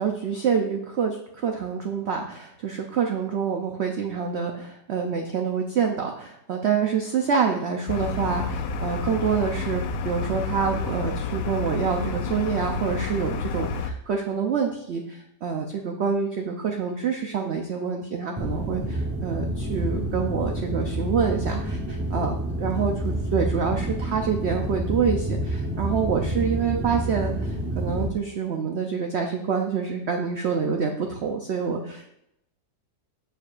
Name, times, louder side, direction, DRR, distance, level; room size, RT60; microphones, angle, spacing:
voice 1, 0.0-32.1, right 6 dB, 65° right, 3 dB, 0.6 m, -27 dB
sound 1, 7.9-13.9, left 4 dB, 90° left, 1.3 m, -30 dB
sound 2, 18.4-28.1, right 1 dB, 20° right, 0.3 m, -28 dB
6.9 x 6.8 x 2.5 m, 0.81 s
omnidirectional pair, 1.8 m